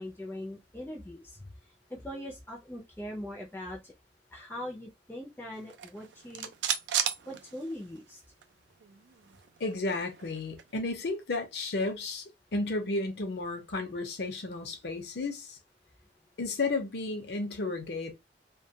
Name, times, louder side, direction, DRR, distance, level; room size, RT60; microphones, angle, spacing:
voice 1, 0.0-3.9 4.3-6.5 7.3-8.2, left 1 dB, 10° left, 0.4 m, -41 dB
sound 1, 5.6-8.1 8.4-8.5 8.8-10.7, right 9 dB, 85° right, 0.4 m, -35 dB
voice 2, 9.6-12.2 12.5-15.6 16.4-18.1, left 3 dB, 65° left, 0.6 m, -33 dB
2.2 x 2.2 x 2.7 m
head